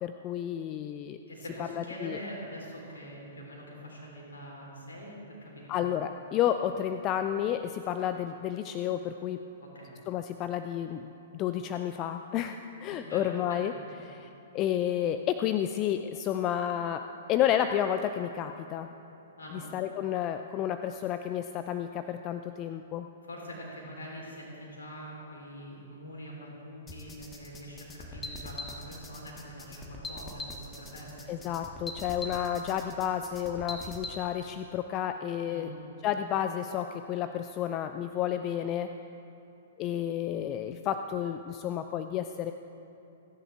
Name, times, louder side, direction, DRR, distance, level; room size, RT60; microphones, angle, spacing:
voice 1, 0.0-1.2 1.7-2.2 5.7-9.4 10.1-13.7 14.0-14.3 14.5-18.9 19.5-23.1 31.3-35.7 36.0-38.9 39.8-42.5, left 10 dB, 30° left, 9 dB, 0.5 m, -31 dB
voice 2, 1.3-5.9 9.6-9.9 12.9-13.2 13.5-13.6 13.9-14.0 19.4-19.7 23.2-31.3 35.5-35.7, equal, 70° left, -2 dB, 4.1 m, -44 dB
sound 1, 26.9-34.1, left 2 dB, 15° left, 1.5 m, -42 dB
28.5 x 10.5 x 3.6 m, 2.9 s
figure-of-eight pair, 110°, 0 cm